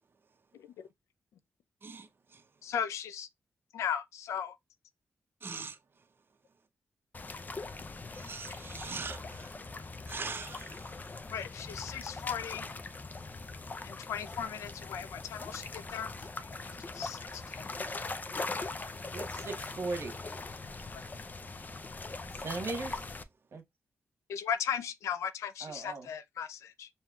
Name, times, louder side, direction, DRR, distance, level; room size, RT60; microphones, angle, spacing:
voice 1, 1.8-2.6 5.4-6.1 8.1-9.6 10.0-11.2, right 4 dB, 45° right, 0.7 m, -43 dB
voice 2, 2.6-3.3 3.7-4.6 11.3-12.7 13.8-16.1 16.4-16.5 16.9-17.7 24.3-26.9, left 8 dB, 90° left, 0.4 m, -37 dB
sound 1, 7.1-23.2, left 3 dB, 35° left, 0.5 m, -41 dB
voice 3, 19.1-20.2 22.3-23.0 23.5-23.6 25.6-26.1, right 3 dB, 65° right, 1.2 m, -38 dB
5.5 x 2.8 x 2.3 m
cardioid pair, 55°, 5 cm